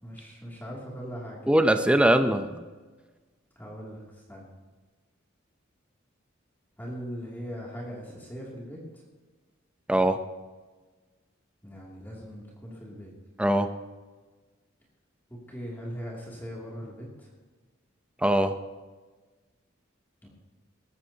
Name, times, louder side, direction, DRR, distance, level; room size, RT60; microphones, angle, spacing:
voice 1, 0.0-1.4 3.6-4.5 6.8-9.0 11.6-13.1 15.3-17.3 20.2-20.3, equal, 10° left, -5 dB, 2.7 m, -40 dB
voice 2, 1.5-2.7 9.9-10.2 13.4-13.7 18.2-18.6, right 1 dB, 5° right, 7 dB, 0.6 m, -22 dB
19.5 x 14.0 x 2.9 m, 1.3 s
head